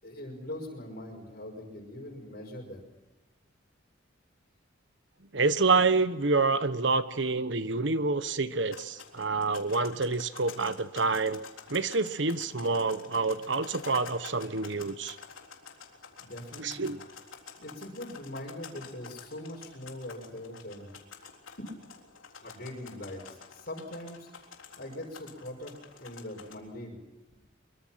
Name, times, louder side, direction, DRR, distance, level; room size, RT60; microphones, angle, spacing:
voice 1, 0.0-2.8 16.2-16.9 17.6-20.9 21.2-21.3 21.6-21.7 22.4-24.3 24.8-25.7 26.0-27.0, left 1 dB, 50° left, -3 dB, 5.5 m, -42 dB
voice 2, 5.3-11.4 11.7-15.2 16.6-17.0, right 3 dB, 65° right, 12 dB, 1.2 m, -27 dB
sound 1, 8.7-26.6, left 6 dB, 90° left, 3.7 m, -49 dB
25.0 x 24.0 x 5.9 m, 1.1 s
head